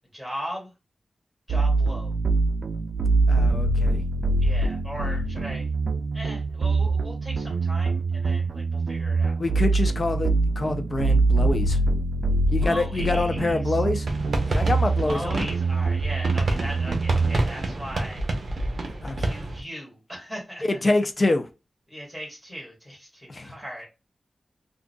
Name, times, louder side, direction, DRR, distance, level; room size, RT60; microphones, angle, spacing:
voice 1, 0.1-0.7 1.5-2.1 4.4-5.7 6.1-9.4 12.5-13.8 15.0-18.2 19.2-20.6 21.9-23.9, equal, 5° right, 2.0 m, -38 dB
sound 1, 1.5-17.5, right 3 dB, 85° right, 0.4 m, -24 dB
voice 2, 3.3-4.0 9.4-11.8 12.5-14.1 14.4-15.5 19.0-19.3 20.7-21.5 23.3-23.5, left 2 dB, 35° left, 0.5 m, -26 dB
sound 2, 14.1-19.6, right 2 dB, 60° right, 0.8 m, -28 dB
3.7 x 2.5 x 2.2 m
wide cardioid pair, 110°, 0 cm